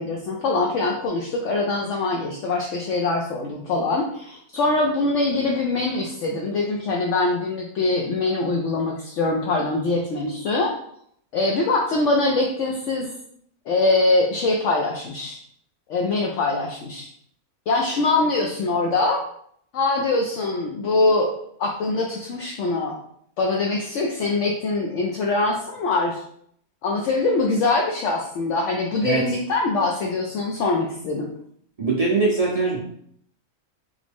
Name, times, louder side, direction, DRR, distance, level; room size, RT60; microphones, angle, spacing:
voice 1, 0.0-10.8 11.3-13.1 13.7-15.4 15.9-17.1 17.7-19.2 19.7-21.3 21.6-23.0 23.4-26.2 26.8-31.3, left 3 dB, 65° left, 0 dB, 0.8 m, -23 dB
voice 2, 31.8-32.8, right 3 dB, 45° right, -3 dB, 0.5 m, -21 dB
3.9 x 3.0 x 3.4 m, 0.67 s
omnidirectional pair, 1.5 m